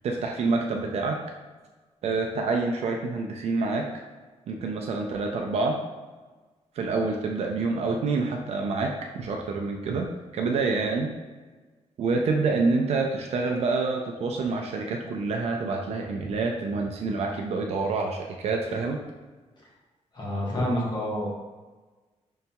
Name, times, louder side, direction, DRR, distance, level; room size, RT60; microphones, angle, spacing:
voice 1, 0.0-1.2 2.0-3.8 4.5-5.8 6.8-10.1 10.3-11.1 12.0-19.0, right 3 dB, 60° right, 1 dB, 0.4 m, -27 dB
voice 2, 20.1-21.3, left 1 dB, 40° left, -3 dB, 0.9 m, -28 dB
5.4 x 2.8 x 2.3 m, 1.3 s
wide cardioid pair, 180°, 12 cm